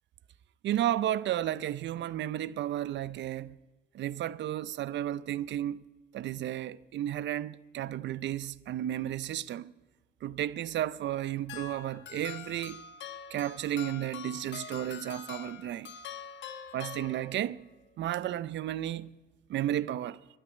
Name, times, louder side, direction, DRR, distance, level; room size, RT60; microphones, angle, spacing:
voice 1, 0.6-3.6 3.9-5.8 6.1-9.7 10.2-12.8 13.3-15.9 16.7-17.6 18.0-19.1 19.5-20.2, right 12 dB, 65° right, 0.5 m, -33 dB
sound 1, 11.5-17.6, left 8 dB, 65° left, 1.1 m, -44 dB
11.5 x 8.8 x 9.6 m
cardioid pair, 90°, 20 cm